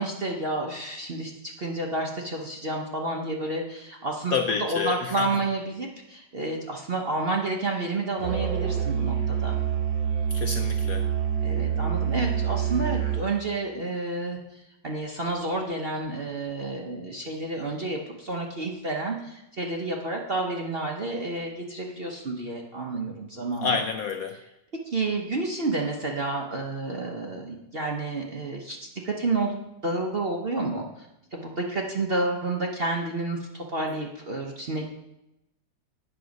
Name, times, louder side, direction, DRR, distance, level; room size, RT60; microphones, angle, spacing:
voice 1, 0.0-9.5 11.4-23.8 24.8-34.9, right 2 dB, 45° right, 1 dB, 0.8 m, -30 dB
voice 2, 4.3-5.3 10.3-11.1 23.6-24.4, left 5 dB, 70° left, 5 dB, 0.9 m, -28 dB
Musical instrument, 8.2-13.3, right 8 dB, 80° right, 1.9 m, -26 dB
9.0 x 6.2 x 5.1 m, 0.90 s
omnidirectional pair, 2.0 m